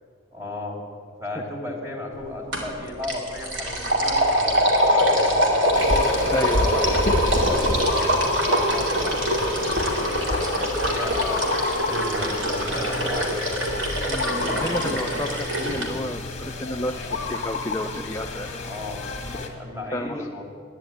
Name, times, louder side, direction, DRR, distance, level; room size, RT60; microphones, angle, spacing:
voice 1, 0.3-0.8 1.2-5.7 7.8-11.4 11.8-13.5 18.7-19.0 19.6-20.4, left 2 dB, 15° right, -1 dB, 2.8 m, -34 dB
sound 1, 2.5-2.7 3.0-15.9, equal, 70° right, 2.5 m, -23 dB
sound 2, 5.7-19.5, left 2 dB, 35° left, 1.7 m, -30 dB
voice 2, 6.3-6.9 14.1-18.5 19.9-20.3, left 1 dB, 15° left, 3 dB, 0.4 m, -31 dB
11.5 x 9.9 x 9.1 m, 2.2 s
head